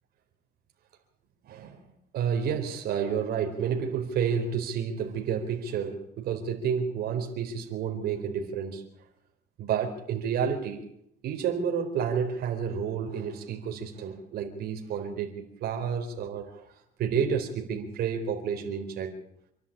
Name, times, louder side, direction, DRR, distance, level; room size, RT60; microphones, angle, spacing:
voice 1, 1.4-1.8 2.1-8.8 9.6-10.8 11.2-16.7 17.0-19.1, right 7 dB, 70° right, 2 dB, 4.1 m, -30 dB
28.0 x 11.0 x 8.7 m, 0.74 s
cardioid pair, 110°, 17 cm